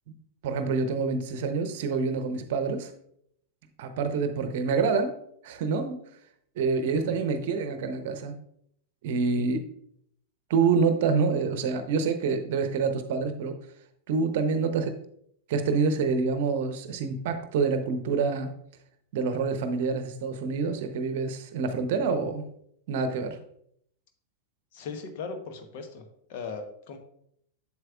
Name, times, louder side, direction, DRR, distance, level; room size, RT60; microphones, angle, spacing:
voice 1, 0.4-2.9 3.8-5.2 5.4-6.0 6.6-8.4 9.0-9.6 10.5-13.5 14.1-14.9 15.5-18.5 19.1-22.5 22.9-23.4, right 5 dB, 55° right, 9 dB, 0.8 m, -27 dB
voice 2, 24.7-26.0 26.3-27.0, left 4 dB, 50° left, 6 dB, 1.0 m, -38 dB
7.6 x 7.3 x 2.4 m, 0.69 s
figure-of-eight pair, 90°, 0 cm